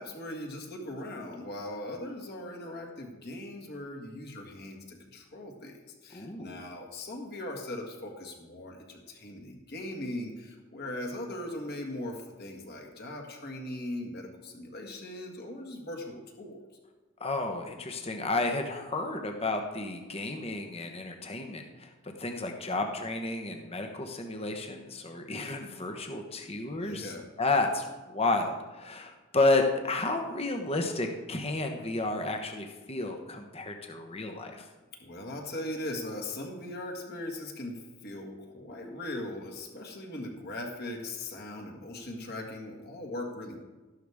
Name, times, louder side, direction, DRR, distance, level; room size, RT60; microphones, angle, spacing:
voice 1, 0.0-16.6 26.7-27.3 35.0-43.6, left 1 dB, 50° left, 1 dB, 1.8 m, -39 dB
voice 2, 6.1-6.6 17.2-21.9 22.2-27.1 27.4-34.6, left 2 dB, 30° left, 4 dB, 1.0 m, -31 dB
12.5 x 11.5 x 3.6 m, 1.2 s
head